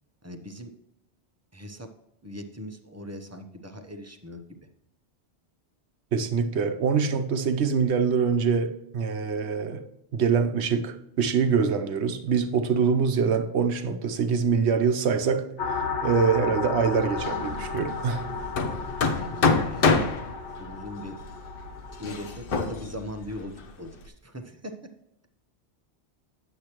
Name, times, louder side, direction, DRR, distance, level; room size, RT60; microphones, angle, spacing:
voice 1, 0.2-0.7 1.5-1.9 2.2-4.4 18.7-20.0 20.6-21.2 22.0-24.8, left 1 dB, 15° right, 0.7 m, -40 dB
voice 2, 6.1-9.9 10.1-18.3, right 6 dB, 70° right, 1.1 m, -24 dB
sound 1, 15.6-22.4, left 5 dB, 85° left, 1.3 m, -34 dB
Hammer, 17.2-24.1, left 4 dB, 55° left, 0.9 m, -28 dB
9.7 x 8.3 x 3.0 m
omnidirectional pair, 1.2 m